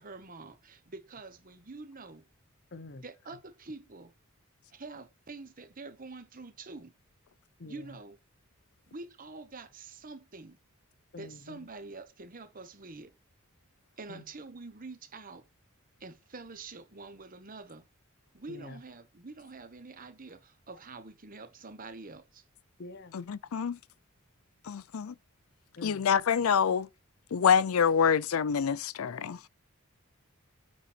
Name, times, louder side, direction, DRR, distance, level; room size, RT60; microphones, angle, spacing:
voice 1, 0.0-2.2 3.0-4.1 4.7-6.9 7.6-8.2 8.9-10.6 11.2-13.1 14.0-15.5 16.0-17.8 18.3-22.4, right 3 dB, 40° right, 1.1 m, -46 dB
voice 2, 2.7-3.0 7.6-8.0 11.1-11.7 14.1-14.3 18.5-18.8 22.8-23.2 25.8-26.1, left 2 dB, 50° left, 0.8 m, -46 dB
voice 3, 23.1-23.8 24.6-25.1 25.8-26.9 27.3-29.4, left 7 dB, 85° left, 0.5 m, -26 dB
9.1 x 4.1 x 4.4 m
head